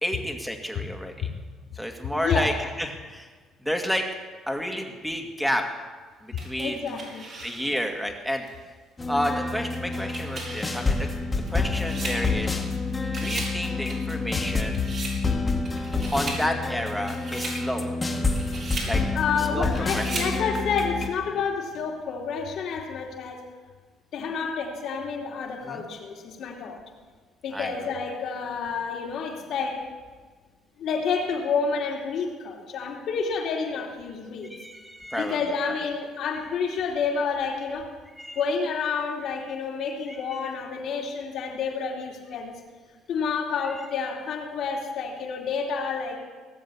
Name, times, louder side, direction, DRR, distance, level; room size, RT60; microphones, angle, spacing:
voice 1, 0.0-1.3 1.7-3.3 3.6-4.1 4.5-5.6 6.2-7.0 7.4-8.4 9.1-11.1 11.5-12.6 13.2-14.8 16.1-17.9 18.9-19.0 19.5-19.7 19.9-20.2 25.6-25.9 27.5-27.7 34.5-35.4 38.2-38.4 40.1-40.4 43.7-43.8, equal, ahead, 4 dB, 2.1 m, -30 dB
voice 2, 2.1-2.5 6.3-7.3 14.3-14.4 14.8-14.9 15.5-15.6 19.1-23.4 24.1-26.8 27.4-29.8 30.8-34.5 35.1-37.9 38.3-42.6 43.1-46.2, left 5 dB, 65° left, -1 dB, 2.8 m, -29 dB
sound 1, 6.4-7.9 8.5-8.6 9.8-12.8 13.0-13.6 13.9-15.2 15.6-16.4 16.9-17.6 18.1-18.9 19.6-20.4, right 3 dB, 50° right, 4.9 m, -37 dB
sound 2, 9.0-21.1, left 3 dB, 20° left, 2.0 m, -28 dB
18.5 x 7.3 x 7.0 m, 1.5 s
supercardioid pair, 75°, 0 cm